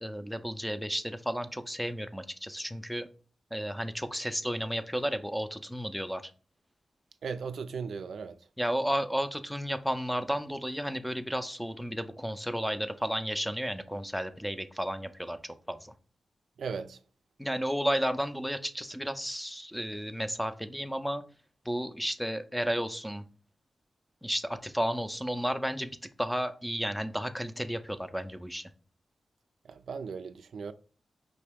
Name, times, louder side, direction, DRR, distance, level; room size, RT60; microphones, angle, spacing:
voice 1, 0.0-3.1 3.5-6.3 8.6-15.9 17.4-21.2 21.7-23.2 24.2-28.7, equal, ahead, 0.5 m, -33 dB
voice 2, 7.2-8.4 16.6-17.0 29.7-30.7, right 5 dB, 85° right, 0.3 m, -37 dB
5.3 x 2.8 x 3.4 m
wide cardioid pair, 105°, 0 cm